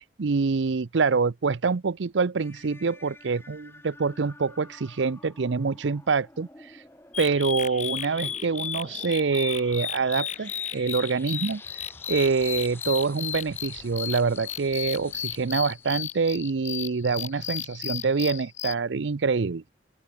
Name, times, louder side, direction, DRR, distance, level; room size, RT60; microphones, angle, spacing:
voice 1, 0.0-6.5 7.2-11.6 12.1-19.6, right 4 dB, 80° right, 0.6 m, -26 dB
sound 1, 2.4-16.1, left 2 dB, 15° left, 3.5 m, -50 dB
sound 2, 7.1-18.7, left 9 dB, 40° left, 1.0 m, -34 dB
open air
head